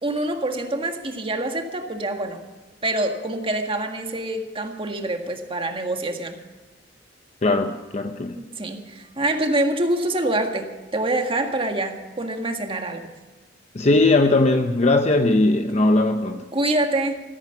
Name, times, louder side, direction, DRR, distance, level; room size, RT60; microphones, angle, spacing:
voice 1, 0.0-2.4 2.8-6.4 8.6-13.1 16.5-17.2, right 1 dB, 30° right, 4 dB, 1.7 m, -25 dB
voice 2, 7.4-8.4 13.7-16.4, left 2 dB, 40° left, 6 dB, 0.7 m, -19 dB
15.0 x 14.5 x 5.9 m, 1.2 s
head